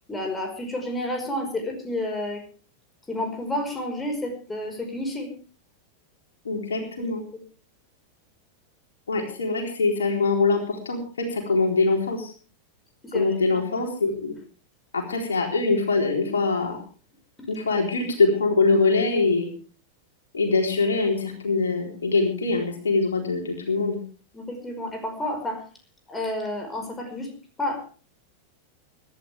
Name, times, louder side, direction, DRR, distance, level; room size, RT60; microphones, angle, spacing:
voice 1, 0.1-2.4 3.1-5.3 13.0-13.3 13.5-13.6 24.3-25.6 26.1-27.3 27.6-27.8, left 1 dB, 10° left, 4 dB, 5.2 m, -30 dB
voice 2, 6.4-7.2 9.1-12.3 13.1-14.3 14.9-16.8 17.5-19.5 20.3-24.0, left 3 dB, 70° left, 2 dB, 4.1 m, -23 dB
24.5 x 12.0 x 3.5 m, 0.38 s
figure-of-eight pair, 90°, 0 cm